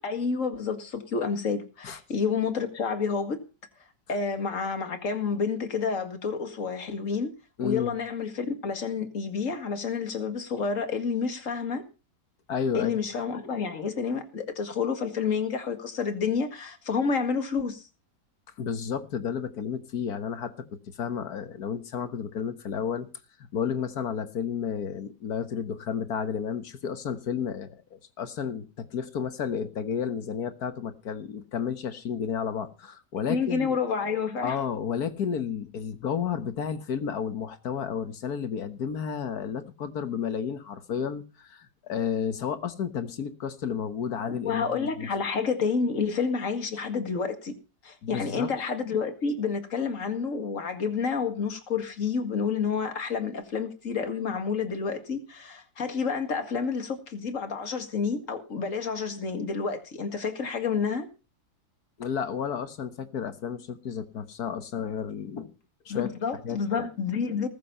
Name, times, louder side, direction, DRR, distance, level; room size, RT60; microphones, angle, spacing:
voice 1, 0.0-3.4 4.1-7.3 7.6-11.8 12.7-17.8 33.3-34.6 44.4-47.5 47.8-61.1 65.9-67.5, left 5 dB, 50° left, 2.4 m, -29 dB
voice 2, 7.6-8.0 12.5-13.0 18.6-20.7 21.0-23.1 23.5-33.8 34.4-45.1 48.0-48.5 62.0-65.5 65.9-66.1 66.4-66.9, left 7 dB, 65° left, 1.8 m, -32 dB
19.5 x 7.7 x 5.5 m
omnidirectional pair, 1.8 m